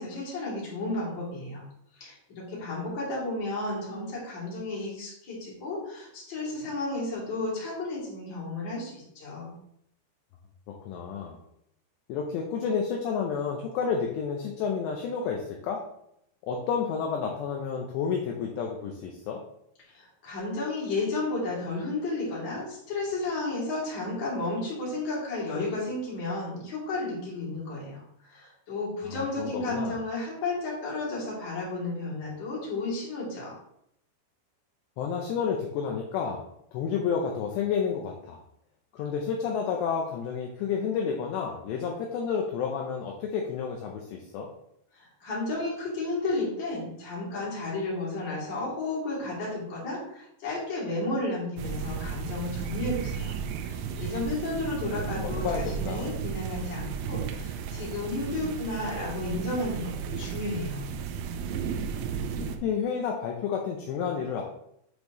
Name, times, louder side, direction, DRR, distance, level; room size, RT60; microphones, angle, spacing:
voice 1, 0.0-1.6 2.0-9.5 19.9-28.0 28.3-33.5 44.9-53.3 53.6-60.9, left 2 dB, 30° left, -7 dB, 2.6 m, -33 dB
voice 2, 10.7-11.4 12.1-15.8 16.5-19.4 29.0-30.0 35.0-36.4 36.7-38.4 38.9-44.5 55.1-56.2 62.6-64.4, left 6 dB, 80° left, 1 dB, 2.6 m, -30 dB
sound 1, 51.6-62.6, right 7 dB, 80° right, 2.7 m, -34 dB
8.0 x 5.3 x 3.1 m, 0.75 s
omnidirectional pair, 5.7 m